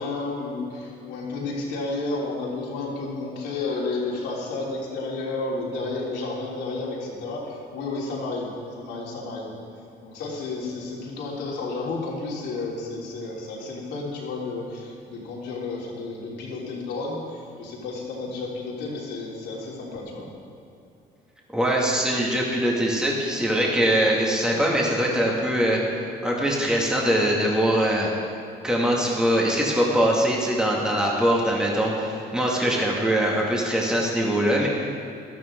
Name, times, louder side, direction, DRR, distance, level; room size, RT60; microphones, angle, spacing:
voice 1, 0.0-9.5 10.0-20.3, left 3 dB, 80° left, -4 dB, 3.4 m, -31 dB
voice 2, 21.5-28.1 28.6-34.7, equal, 5° right, -3 dB, 2.3 m, -22 dB
14.0 x 13.0 x 3.9 m, 2.6 s
cardioid pair, 105°, 18 cm